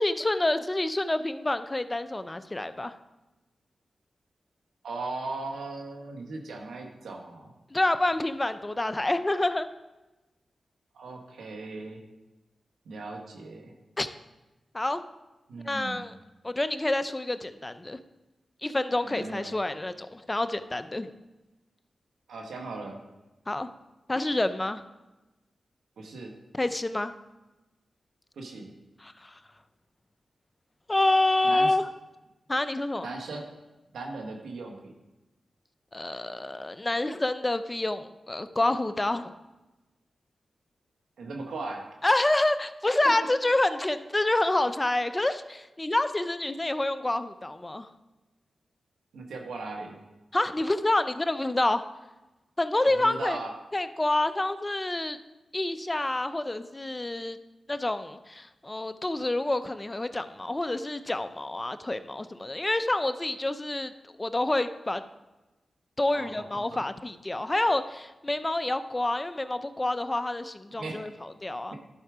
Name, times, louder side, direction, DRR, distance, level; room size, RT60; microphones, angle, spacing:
voice 1, 0.0-2.9 7.7-9.7 14.0-14.1 14.7-15.0 15.6-16.1 16.4-18.0 18.6-21.1 23.5-23.7 24.1-24.8 26.5-27.1 29.0-29.3 30.9-31.9 32.5-33.1 35.9-39.3 42.0-47.9 50.3-51.8 52.6-53.4 53.7-55.2 55.5-57.4 57.7-63.9 64.2-65.0 66.0-71.8, left 2 dB, 25° left, 11 dB, 0.5 m, -28 dB
voice 2, 4.8-7.5 10.9-12.0 12.8-13.7 15.5-16.0 19.0-19.5 22.3-23.0 26.0-26.3 28.4-28.7 31.4-31.7 33.0-33.4 33.9-34.9 41.2-41.8 49.1-50.0 52.8-53.5 66.1-66.8 70.8-71.0, right 3 dB, 90° right, 2 dB, 1.3 m, -38 dB
11.5 x 4.5 x 5.0 m, 1.1 s
cardioid pair, 55°, 0 cm